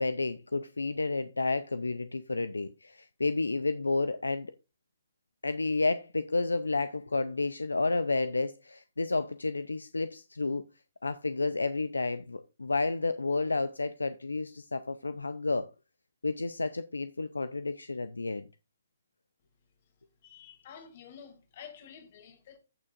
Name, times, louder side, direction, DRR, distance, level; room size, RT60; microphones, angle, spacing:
voice 1, 0.0-4.5 5.4-10.7 11.0-15.7 16.2-18.5, left 3 dB, 80° left, 0.6 m, -31 dB
voice 2, 20.2-22.6, left 7 dB, 45° left, 2.6 m, -50 dB
15.0 x 6.2 x 2.5 m
figure-of-eight pair, 130°, 0 cm